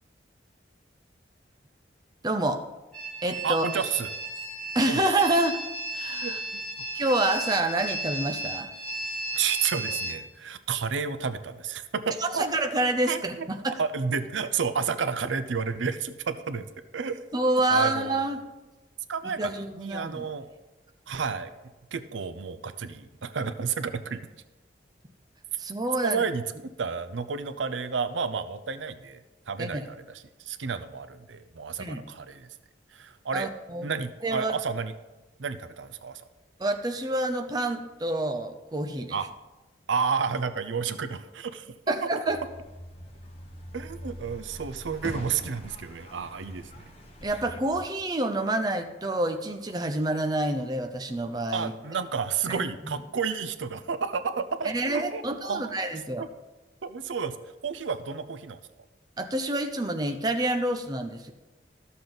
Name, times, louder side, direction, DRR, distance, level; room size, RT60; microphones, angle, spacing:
voice 1, 2.2-2.6 3.2-3.7 4.7-5.6 5.9-6.4 6.9-8.7 12.2-13.8 17.3-18.4 19.4-20.2 25.6-26.2 29.6-29.8 31.8-32.1 33.3-33.9 34.2-34.5 36.6-39.2 41.9-42.4 47.2-51.7 52.5-53.0 54.6-56.3 59.2-61.3, right 2 dB, 20° right, 5 dB, 0.6 m, -28 dB
sound 1, 2.9-10.2, right 2 dB, 5° left, 2.6 m, -34 dB
voice 2, 3.4-4.1 4.9-5.0 6.2-6.6 9.3-12.5 13.1-13.5 13.8-16.7 16.9-17.3 17.7-18.2 19.1-20.5 21.1-21.5 21.9-24.2 26.0-26.5 26.8-29.2 29.5-32.5 32.9-33.5 33.8-34.9 35.4-36.2 39.1-39.3 39.9-41.7 42.0-42.1 43.7-46.8 51.5-55.7 56.8-57.4 57.6-58.6, right 5 dB, 90° right, 12 dB, 0.6 m, -31 dB
sound 2, 42.3-47.8, equal, 35° left, 1.3 m, -43 dB
12.5 x 6.9 x 3.9 m, 1.1 s
head